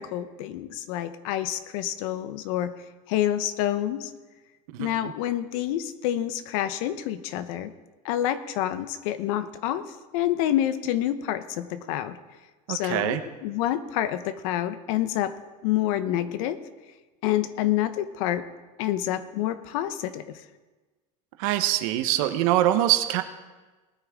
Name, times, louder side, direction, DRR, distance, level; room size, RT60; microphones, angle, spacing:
voice 1, 0.0-2.7 3.1-4.1 4.8-7.7 8.0-12.2 12.7-15.3 15.6-16.6 17.2-18.5 18.8-20.4, left 12 dB, 70° left, 12 dB, 0.9 m, -28 dB
voice 2, 4.7-5.1 12.7-13.2 21.4-23.2, right 13 dB, 70° right, 9 dB, 1.0 m, -24 dB
19.5 x 9.4 x 3.6 m, 1.2 s
supercardioid pair, 140°, 18 cm